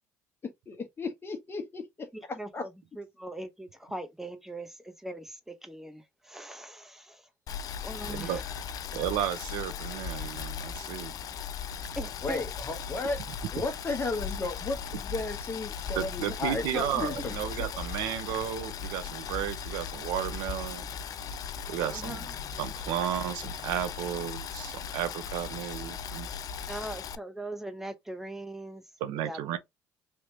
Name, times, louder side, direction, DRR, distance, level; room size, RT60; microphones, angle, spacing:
voice 1, 0.4-2.1 2.5-2.6 12.2-13.2 13.5-17.3, left 3 dB, 30° left, 1.2 m, -34 dB
voice 2, 2.1-7.3 7.8-8.5 11.9-12.5 16.3-16.9 17.6-17.7 21.9-22.4 26.7-28.8 29.1-29.6, right 1 dB, 5° right, 0.9 m, -41 dB
Boiling, 7.5-27.2, left 7 dB, 55° left, 0.4 m, -38 dB
voice 3, 8.0-8.4 8.9-11.1 11.7-11.8 16.0-20.9 21.7-22.2 22.6-26.3 29.0-29.6, right 11 dB, 75° right, 0.6 m, -33 dB
3.3 x 2.9 x 2.9 m
hypercardioid pair, 70°, 8 cm